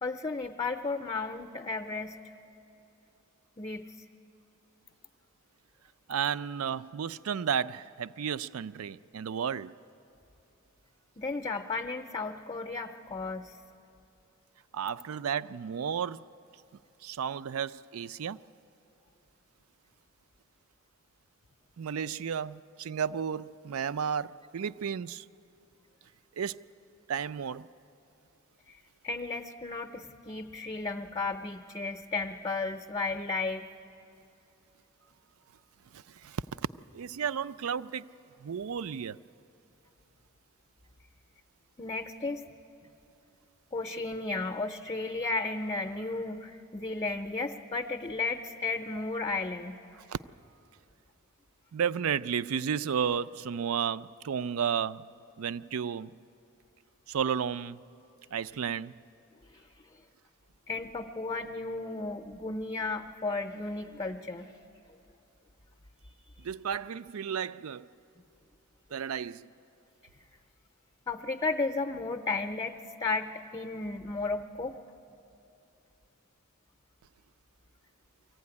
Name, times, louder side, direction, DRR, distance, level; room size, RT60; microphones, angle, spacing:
voice 1, 0.0-2.2 3.6-3.9 11.2-13.5 28.7-28.8 29.0-33.7 41.8-42.4 43.7-49.8 59.5-59.6 60.7-64.5 71.1-74.8, left 3 dB, 25° left, 0.6 m, -34 dB
voice 2, 6.1-9.7 14.7-16.2 17.0-18.4 21.8-25.3 26.4-26.6 27.1-27.7 35.9-36.4 36.9-38.1 38.4-39.2 50.1-50.2 51.7-55.0 55.4-56.1 57.1-57.8 58.3-58.9 66.4-67.9 68.9-69.5, right 7 dB, 75° right, 0.4 m, -33 dB
23.5 x 15.5 x 9.7 m
head